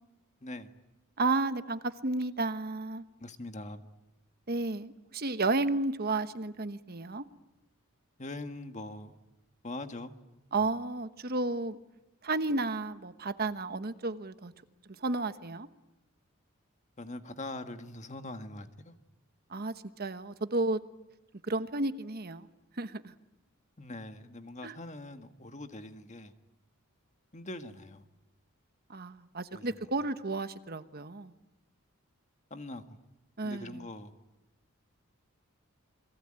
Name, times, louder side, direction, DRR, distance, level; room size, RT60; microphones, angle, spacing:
voice 1, 0.4-0.7 3.2-3.8 8.2-9.2 9.6-10.1 10.6-10.7 17.0-19.0 23.8-26.3 27.3-28.0 29.5-29.7 32.5-33.0 33.4-34.1, left 2 dB, 35° left, 1.6 m, -42 dB
voice 2, 1.2-3.0 4.5-7.3 10.5-11.8 12.2-14.5 15.0-15.7 19.5-20.8 21.5-22.5 22.8-23.1 24.6-24.7 28.9-31.3 33.4-33.9, right 2 dB, 45° right, 1.1 m, -32 dB
29.5 x 23.0 x 8.9 m
head